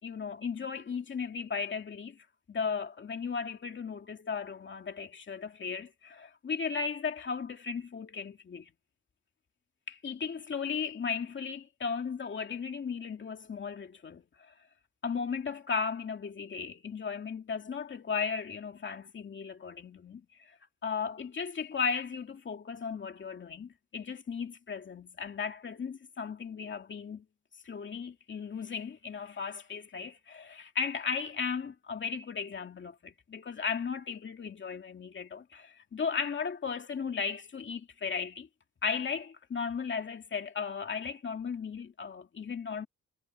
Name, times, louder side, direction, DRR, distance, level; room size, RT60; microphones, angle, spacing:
voice 1, 0.0-8.7 9.9-14.5 15.0-27.2 27.6-38.5 38.8-42.9, left 6 dB, 40° left, 2.5 m, -36 dB
cardioid pair, 125°, 29 cm